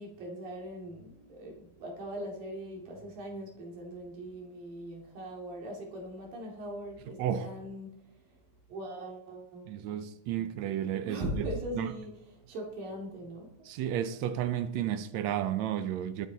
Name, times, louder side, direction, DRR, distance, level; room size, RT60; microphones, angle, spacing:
voice 1, 0.0-7.9 8.7-10.0 10.4-10.5 11.1-13.5, right 1 dB, 70° right, 4.5 m, -40 dB
voice 2, 7.2-7.5 9.7-11.5 11.7-11.9 13.6-16.3, right 10 dB, 85° right, 1.5 m, -32 dB
21.5 x 9.2 x 4.1 m
omnidirectional pair, 4.1 m